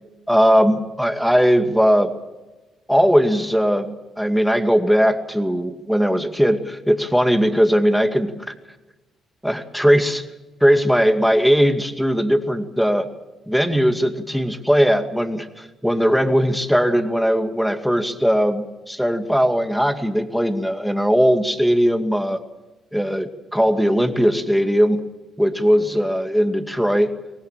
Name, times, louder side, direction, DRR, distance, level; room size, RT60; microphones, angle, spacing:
voice 1, 0.3-2.1 2.9-8.5 9.4-10.2 10.6-13.1 13.5-22.4 22.9-25.0 25.4-27.1, equal, ahead, 6 dB, 2.3 m, -19 dB
24.0 x 18.5 x 7.5 m, 1.1 s
cardioid pair, 90°, 0 cm